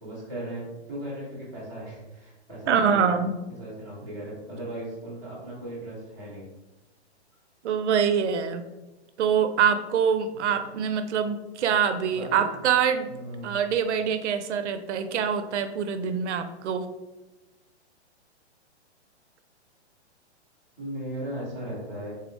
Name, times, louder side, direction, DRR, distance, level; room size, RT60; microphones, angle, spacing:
voice 1, 0.0-3.0 3.5-6.5 10.3-10.5 12.1-12.6 13.1-13.6 20.8-22.1, right 1 dB, 5° left, -13 dB, 0.4 m, -37 dB
voice 2, 2.7-3.3 7.6-8.6 9.2-13.1 13.4-16.9, right 7 dB, 85° right, 9 dB, 0.5 m, -24 dB
3.6 x 2.1 x 3.0 m, 1.1 s
hypercardioid pair, 165°, 34 cm